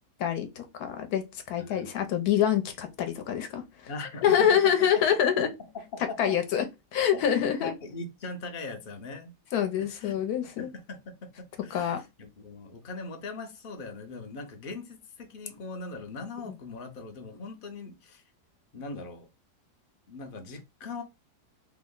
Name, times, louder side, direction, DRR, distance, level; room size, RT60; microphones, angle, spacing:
voice 1, 0.2-3.6 4.2-5.5 6.2-6.6 6.9-7.7 9.5-10.7 11.7-12.0 16.5-16.6, left 9 dB, 70° left, 1.1 m, -26 dB
voice 2, 1.6-1.9 3.9-4.7 5.3-6.4 7.1-9.3 9.8-10.1 10.6-18.2 18.7-19.3 20.1-21.0, left 3 dB, 50° left, 0.6 m, -40 dB
3.4 x 2.1 x 3.6 m
omnidirectional pair, 1.8 m